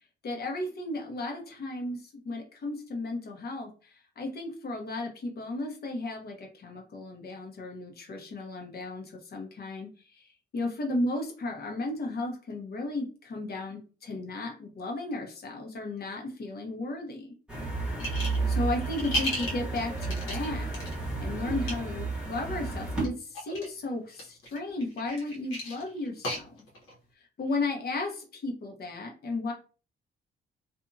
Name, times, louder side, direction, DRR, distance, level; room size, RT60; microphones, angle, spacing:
voice 1, 0.2-17.3 18.5-20.7 21.2-26.5 27.2-29.5, left 2 dB, 50° left, 2 dB, 1.0 m, -34 dB
sound 1, 17.5-23.1, right 3 dB, 5° right, 1.0 m, -32 dB
sound 2, 18.0-18.5 18.8-20.9 21.5-21.7 22.9-23.7 24.1-26.9, equal, 80° left, 1.2 m, -34 dB
2.7 x 2.5 x 2.6 m, 0.36 s
cardioid pair, 90°, 20 cm